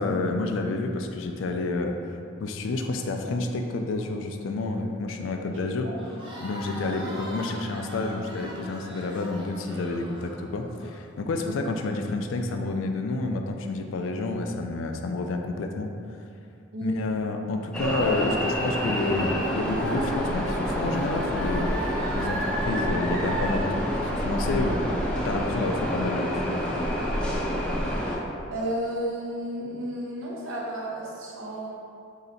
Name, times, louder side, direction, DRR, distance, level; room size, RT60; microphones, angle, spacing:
voice 1, 0.0-1.9 2.4-5.9 6.4-15.9 16.8-21.7 22.1-24.8 25.2-26.6, left 3 dB, 75° left, 4 dB, 0.4 m, -29 dB
voice 2, 5.5-6.0 7.0-7.1 11.5-11.6 16.7-17.1 28.5-31.7, equal, 85° right, -4 dB, 0.8 m, -32 dB
Crowd, 6.0-10.9, right 1 dB, 25° right, 0.7 m, -41 dB
sound 1, 17.7-28.2, equal, 5° left, 0.4 m, -28 dB
sound 2, 17.8-23.6, right 1 dB, 55° right, 0.9 m, -34 dB
3.2 x 2.8 x 4.0 m, 2.4 s
head